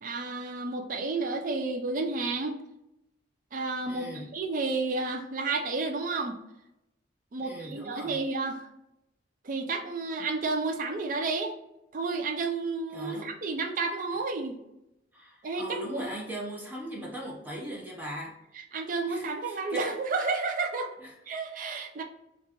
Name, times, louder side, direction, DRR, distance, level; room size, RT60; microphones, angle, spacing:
voice 1, 0.0-2.6 3.5-4.1 4.3-6.4 7.3-8.7 9.4-11.6 11.9-14.6 15.4-16.1 18.7-21.0 21.3-22.0, right 3 dB, 45° right, 4 dB, 0.4 m, -31 dB
voice 2, 3.9-4.3 7.4-8.2 12.9-13.3 14.1-14.2 15.1-18.4 19.1-20.0 21.0-21.1, right 1 dB, 10° right, -3 dB, 0.7 m, -39 dB
4.5 x 2.4 x 2.8 m, 0.88 s
head